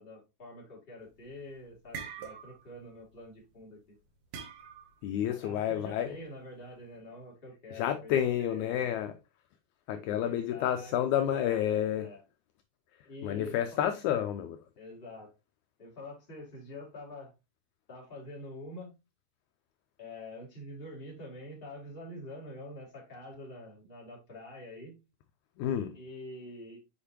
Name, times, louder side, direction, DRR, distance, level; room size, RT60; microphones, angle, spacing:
voice 1, 0.0-4.0 5.3-9.0 9.9-12.2 13.0-13.8 14.8-15.3 15.8-17.3 17.9-18.9 20.0-25.0 25.9-26.8, left 1 dB, 20° left, 2.4 m, -46 dB
sound 1, 1.1-1.4 1.7-2.8 3.0-3.3 4.3-5.0, right 7 dB, 65° right, 2.1 m, -43 dB
voice 2, 5.0-6.2 7.7-9.2 9.9-12.1 13.2-14.6 25.6-26.0, left 10 dB, 80° left, 1.8 m, -30 dB
6.7 x 5.2 x 2.9 m
omnidirectional pair, 3.8 m